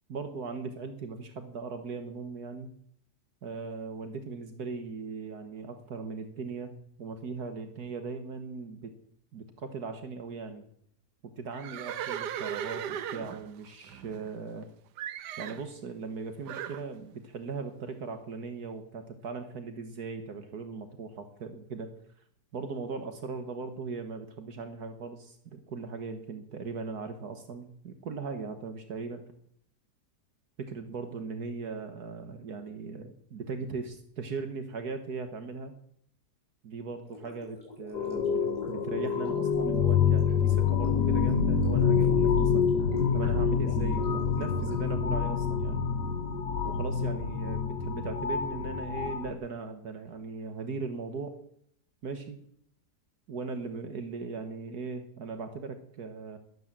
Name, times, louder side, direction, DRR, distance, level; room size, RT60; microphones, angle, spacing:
voice 1, 0.1-2.7 3.4-6.7 7.0-8.9 9.3-10.7 11.2-14.7 15.4-21.9 22.5-29.2 30.6-35.7 36.6-38.4 38.7-42.7 43.1-45.9 46.6-51.4 52.0-52.4 53.3-56.4, right 4 dB, 75° right, 7 dB, 1.9 m, -39 dB
Livestock farm animals working animals, 11.5-14.6 15.0-15.7 16.5-16.8, right 10 dB, 90° right, 1.4 m, -37 dB
Gurgling, 37.0-45.4, left 1 dB, 25° left, 7.4 m, -49 dB
sound 1, 37.9-49.3, left 6 dB, 85° left, 1.8 m, -27 dB
20.5 x 8.9 x 7.5 m, 0.68 s
omnidirectional pair, 1.7 m